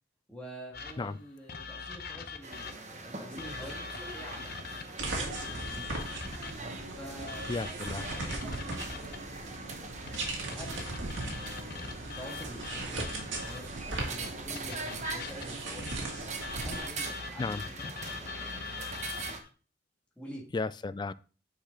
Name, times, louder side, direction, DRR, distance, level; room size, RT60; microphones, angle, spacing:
voice 1, 0.3-6.1 6.9-7.5 8.0-9.2 9.7-16.2 16.6-19.2 20.2-20.5, equal, 5° left, 1.8 m, -48 dB
sound 1, 0.7-3.0 3.4-6.7 7.3-9.3 10.1-13.8 14.6-19.5, left 4 dB, 55° left, 0.8 m, -42 dB
sound 2, 2.4-19.4, right 3 dB, 40° right, 1.0 m, -43 dB
sound 3, 5.0-16.8, right 2 dB, 75° right, 2.1 m, -38 dB
voice 2, 7.5-8.1 17.4-17.6 20.5-21.1, left 3 dB, 25° left, 0.3 m, -34 dB
9.0 x 5.0 x 3.8 m
head